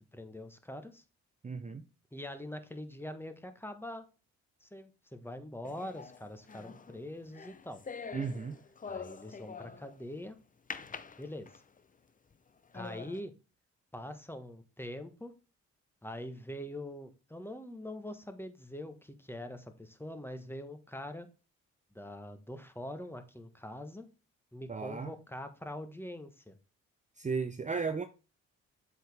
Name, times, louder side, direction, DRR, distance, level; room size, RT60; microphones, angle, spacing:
voice 1, 0.1-1.0 2.1-4.0 4.6-7.8 8.9-10.4 11.2-11.6 12.7-13.3 13.9-15.3 16.0-21.3 21.9-24.1 24.5-26.5, left 1 dB, 10° left, 1.3 m, -43 dB
voice 2, 1.4-1.9 8.1-8.6 24.7-25.1 27.2-28.1, right 5 dB, 25° right, 0.7 m, -35 dB
sound 1, 5.6-10.0 10.7-11.8 12.3-12.4 12.7-13.2, left 5 dB, 30° left, 0.7 m, -45 dB
7.6 x 5.0 x 3.5 m
cardioid pair, 70°, 29 cm